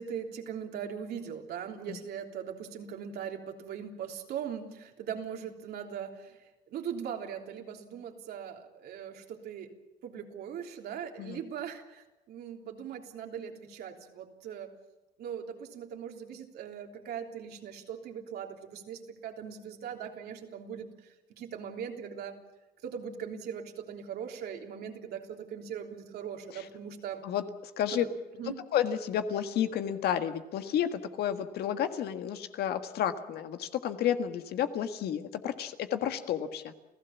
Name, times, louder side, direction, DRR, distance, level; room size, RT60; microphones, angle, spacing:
voice 1, 0.0-9.7 10.0-14.7 15.2-20.9 21.3-22.4 22.8-27.2 27.9-28.6, right 8 dB, 70° right, 2 dB, 3.4 m, -40 dB
voice 2, 28.7-36.7, left 9 dB, 70° left, 8 dB, 1.7 m, -31 dB
28.5 x 16.0 x 7.3 m, 1.1 s
cardioid pair, 110°, 17 cm